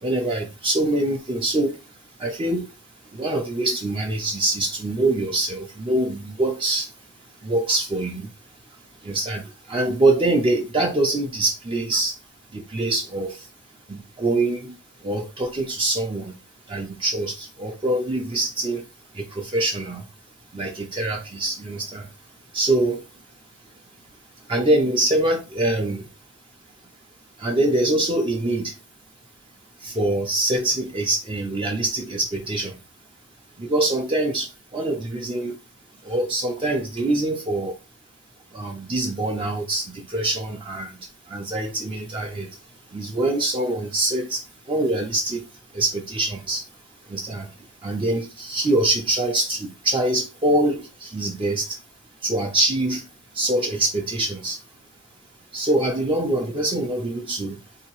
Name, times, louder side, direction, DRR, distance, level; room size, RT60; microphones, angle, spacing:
voice 1, 0.0-2.8 3.1-7.1 7.4-8.3 8.7-12.2 12.5-13.5 13.9-16.4 16.7-18.9 19.1-20.1 20.5-22.1 22.5-23.1 24.4-26.1 27.4-28.8 29.8-32.8 33.6-35.6 36.0-37.8 38.5-46.7 47.0-51.8 52.2-54.6 55.5-57.6, right 2 dB, 25° right, 0.4 m, -24 dB
3.8 x 2.7 x 2.9 m
head